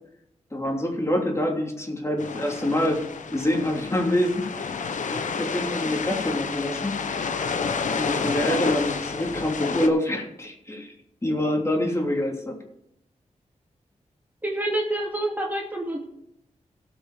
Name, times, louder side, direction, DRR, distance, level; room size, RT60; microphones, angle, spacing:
voice 1, 0.5-3.0 3.3-4.4 5.1-7.0 7.9-10.9 11.2-12.6, left 1 dB, 20° left, 0 dB, 3.0 m, -26 dB
sound 1, 2.2-9.9, left 5 dB, 85° left, 1.0 m, -30 dB
voice 2, 14.4-16.0, right 1 dB, 15° right, -1 dB, 2.3 m, -27 dB
17.5 x 6.4 x 5.1 m, 0.76 s
cardioid pair, 70°, 13 cm